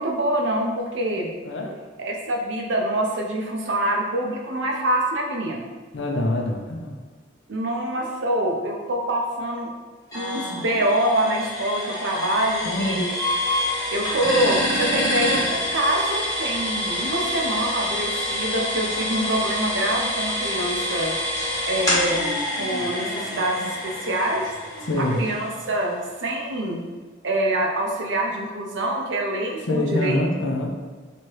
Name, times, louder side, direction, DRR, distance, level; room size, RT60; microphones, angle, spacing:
voice 1, 0.0-1.3 2.0-5.6 7.5-9.7 10.1-13.1 13.9-21.2 21.6-24.5 25.0-26.8 27.2-30.2, right 1 dB, 70° right, 0 dB, 0.7 m, -25 dB
voice 2, 5.9-7.0 12.6-13.0 24.8-25.2 29.6-30.7, left 1 dB, 70° left, 1 dB, 0.6 m, -25 dB
sound 1, 10.1-25.8, left 1 dB, 20° left, 1.4 m, -27 dB
3.2 x 3.0 x 4.6 m, 1.4 s
head